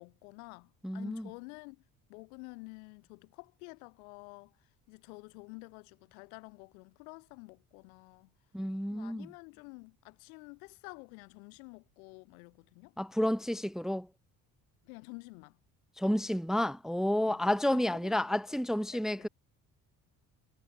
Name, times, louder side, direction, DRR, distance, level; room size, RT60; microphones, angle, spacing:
voice 1, 0.0-1.8 2.1-8.3 8.9-13.0 14.8-15.6 17.2-18.2 18.9-19.3, left 32 dB, 80° left, 4.3 m, -50 dB
voice 2, 0.8-1.3 8.5-9.3 13.0-14.1 16.0-19.3, left 1 dB, ahead, 0.9 m, -30 dB
hypercardioid pair, 60°, 42 cm